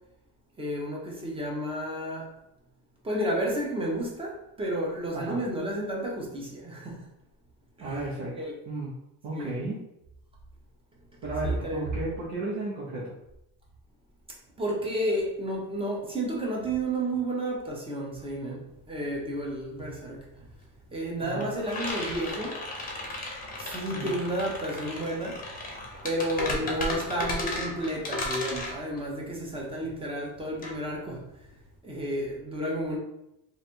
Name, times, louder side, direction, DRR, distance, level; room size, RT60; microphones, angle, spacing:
voice 1, 0.6-2.3 3.0-7.1 7.8-8.0 8.4-8.5 9.3-9.5 11.4-11.9 14.6-20.5 20.9-22.5 23.6-25.4 26.0-31.2 31.8-33.0, right 1 dB, 10° right, -2 dB, 0.8 m, -31 dB
voice 2, 7.8-8.4 8.7-8.9 9.2-9.8 11.2-13.1 21.2-21.4 23.9-24.1 26.4-26.7, right 2 dB, 60° right, -7 dB, 1.2 m, -34 dB
sound 1, 18.7-18.8 19.0-31.7, left 2 dB, 20° left, 0.8 m, -35 dB
3.2 x 2.6 x 4.3 m, 0.84 s
cardioid pair, 150°, 48 cm